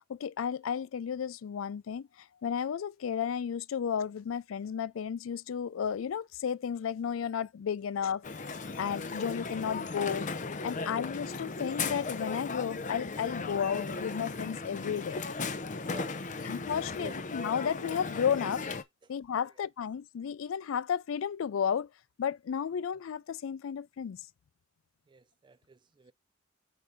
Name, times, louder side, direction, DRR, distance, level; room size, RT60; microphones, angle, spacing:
voice 1, 0.1-2.1 2.4-8.2 8.8-10.3 10.6-15.2 16.4-18.6 19.1-21.9 22.2-24.2, left 7 dB, 85° left, 0.4 m, -33 dB
Crowd, 8.2-18.8, left 4 dB, 40° left, 0.7 m, -37 dB
voice 2, 15.9-16.4 17.0-17.2 25.1-26.1, right 4 dB, 25° right, 0.4 m, -49 dB
7.9 x 2.8 x 4.9 m
head